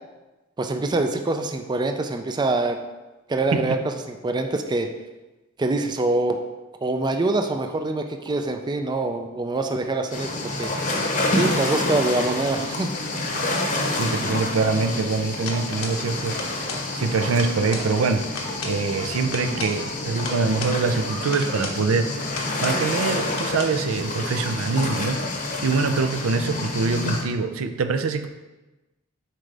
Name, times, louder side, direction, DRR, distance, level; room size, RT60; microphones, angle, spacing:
voice 1, 0.6-2.8 3.3-4.9 5.6-6.4 6.8-10.3 10.6-10.7 11.3-12.9, right 2 dB, 20° right, 5 dB, 0.4 m, -24 dB
sound 1, 10.1-27.2, left 2 dB, 40° left, 0.9 m, -28 dB
voice 2, 13.9-18.3 18.6-22.1 22.6-28.3, right 4 dB, 80° right, 8 dB, 0.5 m, -24 dB
sound 2, 15.5-16.0 16.3-16.9 17.1-17.9 18.2-18.8 19.2-20.8 21.3-21.8 22.2-22.8 23.2-23.7, left 3 dB, 75° left, 1.2 m, -35 dB
7.6 x 5.0 x 3.4 m, 1.1 s
head